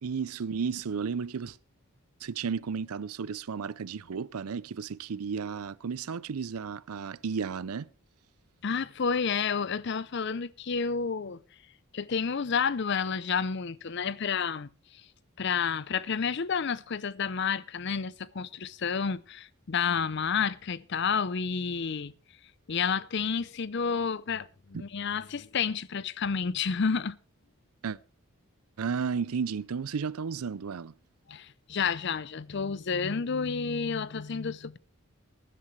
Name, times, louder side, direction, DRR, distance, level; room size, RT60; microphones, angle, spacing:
voice 1, 0.0-1.6 2.2-7.9 24.7-24.8 27.8-28.0 28.8-30.9, right 6 dB, 90° right, 0.5 m, -33 dB
voice 2, 8.6-11.4 11.9-14.7 15.4-22.1 22.7-27.2 31.3-34.8, left 6 dB, 50° left, 0.5 m, -30 dB
19.5 x 11.0 x 3.2 m
head